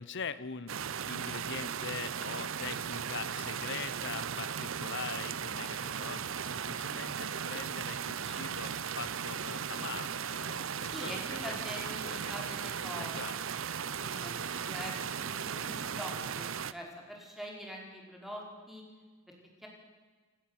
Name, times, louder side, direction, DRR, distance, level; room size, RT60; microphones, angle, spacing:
voice 1, 0.0-11.6 12.0-12.4 13.0-13.4, left 5 dB, 60° left, 15 dB, 1.0 m, -43 dB
sound 1, 0.7-16.7, right 7 dB, 65° right, 0.7 m, -37 dB
voice 2, 10.9-13.4 14.0-18.8 19.3-19.4 19.6-19.7, equal, ahead, -1 dB, 4.8 m, -44 dB
27.5 x 11.5 x 9.7 m, 1.4 s
head